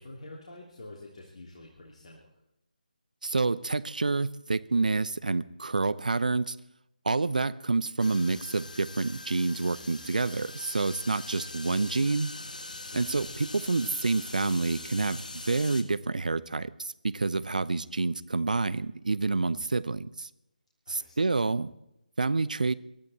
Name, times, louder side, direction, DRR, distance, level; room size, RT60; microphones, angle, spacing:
voice 1, 0.0-2.3 12.9-13.3 20.9-21.4, left 2 dB, 45° left, -3 dB, 3.2 m, -47 dB
voice 2, 3.2-6.6 7.1-12.3 12.9-20.3 20.9-21.7 22.2-22.7, right 3 dB, 65° right, 17 dB, 0.8 m, -28 dB
sound 1, 8.0-15.8, left 2 dB, 65° left, 2.4 m, -42 dB
23.0 x 13.5 x 4.3 m, 0.84 s
figure-of-eight pair, 150°, 5 cm